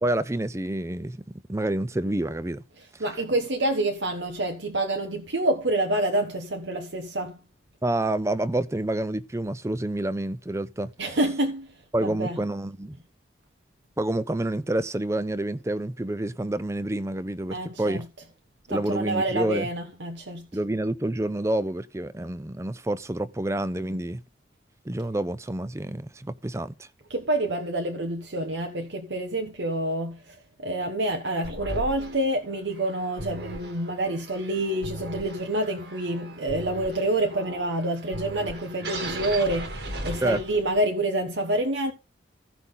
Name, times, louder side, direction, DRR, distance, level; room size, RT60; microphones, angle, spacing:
voice 1, 0.0-2.6 2.9-3.0 7.8-10.9 11.9-13.0 14.0-18.1 18.7-19.7 20.5-24.2 24.9-26.9 40.2-40.4, right 1 dB, 15° right, 0.5 m, -28 dB
voice 2, 3.0-7.4 11.0-12.4 17.5-18.0 18.7-20.5 23.9-24.0 27.1-41.9, right 1 dB, 85° right, 1.2 m, -27 dB
sound 1, 31.4-40.9, right 2 dB, 65° right, 1.9 m, -37 dB
15.5 x 6.0 x 3.9 m
head